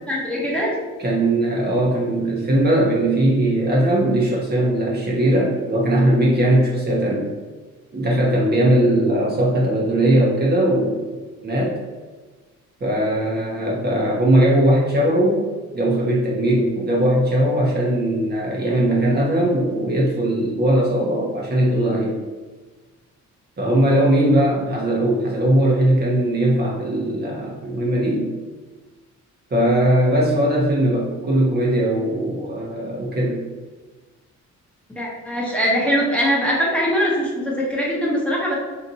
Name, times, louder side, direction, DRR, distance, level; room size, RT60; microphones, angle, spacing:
voice 1, 0.1-0.7 35.0-38.6, equal, 5° left, -5 dB, 0.9 m, -21 dB
voice 2, 1.0-7.3 7.9-11.0 11.4-11.7 12.8-15.4 15.7-22.2 23.6-28.3 29.5-33.4, right 1 dB, 35° right, -4 dB, 0.9 m, -19 dB
2.8 x 2.5 x 3.9 m, 1.3 s
cardioid pair, 90°, 30 cm